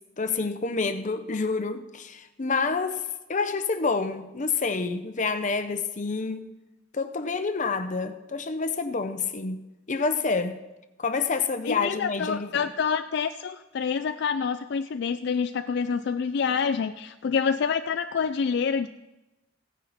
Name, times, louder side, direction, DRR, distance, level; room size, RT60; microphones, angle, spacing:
voice 1, 0.2-3.0 3.3-6.5 6.9-9.6 9.9-10.6 11.0-12.6, left 4 dB, 40° left, 0.8 m, -28 dB
voice 2, 11.6-18.9, left 6 dB, 60° left, 0.4 m, -27 dB
16.5 x 9.9 x 4.2 m
head